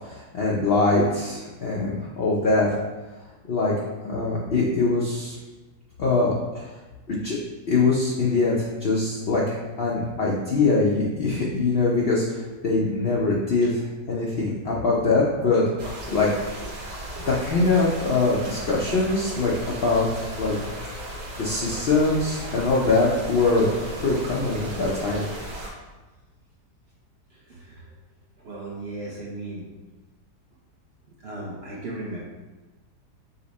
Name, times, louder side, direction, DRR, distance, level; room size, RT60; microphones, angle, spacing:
voice 1, 0.0-2.7 3.5-3.7 4.0-5.4 6.0-6.7 7.1-7.4 7.7-16.6 17.3-20.7 21.4-25.3, left 3 dB, 65° left, -4 dB, 0.6 m, -23 dB
sound 1, 15.8-25.7, right 1 dB, 80° right, 1.6 m, -36 dB
voice 2, 27.3-27.8 28.4-29.7 31.2-32.2, right 2 dB, 55° right, -4 dB, 0.7 m, -36 dB
5.4 x 2.1 x 4.0 m, 1.2 s
omnidirectional pair, 1.8 m